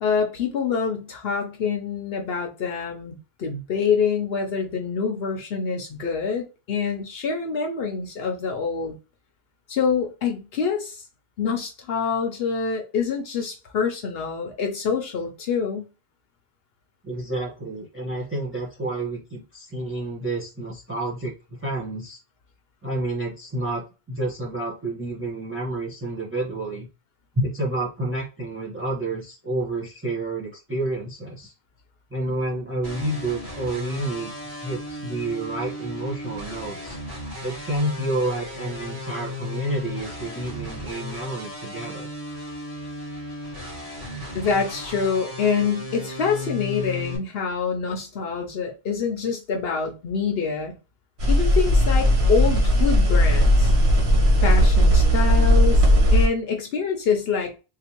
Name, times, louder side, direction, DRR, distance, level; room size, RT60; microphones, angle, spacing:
voice 1, 0.0-8.9 9.7-11.1 11.4-15.9 44.3-50.8 51.3-53.7 54.4-55.9 56.1-57.5, left 6 dB, 70° left, 0.9 m, -26 dB
voice 2, 17.0-21.3 21.6-22.2 22.8-26.9 27.3-31.5 32.1-34.3 34.6-37.0 37.4-42.1, right 2 dB, 15° right, 1.0 m, -29 dB
sound 1, 32.8-47.2, left 1 dB, 50° right, 1.8 m, -35 dB
sound 2, 51.2-56.3, equal, 85° right, 1.5 m, -17 dB
3.5 x 2.9 x 2.9 m
omnidirectional pair, 1.0 m